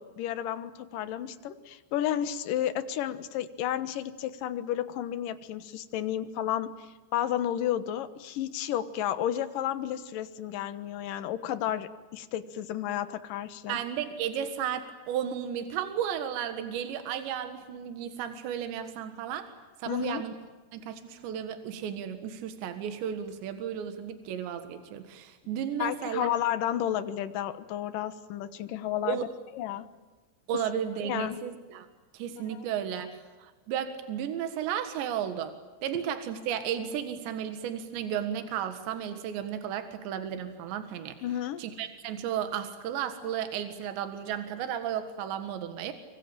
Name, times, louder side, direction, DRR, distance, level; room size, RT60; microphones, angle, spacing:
voice 1, 0.0-13.8 19.9-20.2 25.8-29.2 29.5-29.9 31.0-31.4 32.5-32.6 41.2-41.6, left 11 dB, 65° left, 11 dB, 2.5 m, -32 dB
voice 2, 13.7-19.5 19.8-20.3 20.7-26.3 29.1-29.3 30.5-31.9 32.1-35.5 35.8-41.2 41.6-45.9, right 9 dB, 80° right, 8 dB, 3.9 m, -34 dB
26.0 x 25.0 x 8.9 m, 1.3 s
omnidirectional pair, 5.1 m